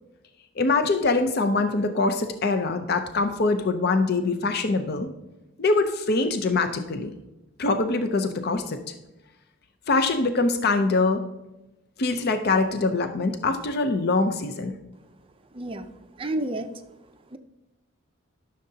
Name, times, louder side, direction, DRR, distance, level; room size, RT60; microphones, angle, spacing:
voice 1, 0.6-5.1 5.6-7.1 7.6-8.8 9.9-11.2 12.0-14.7, left 3 dB, 50° left, 7 dB, 0.5 m, -23 dB
voice 2, 15.5-15.9 16.2-16.7 17.3-17.4, right 1 dB, 25° right, 8 dB, 0.5 m, -30 dB
13.5 x 6.5 x 2.7 m, 0.99 s
head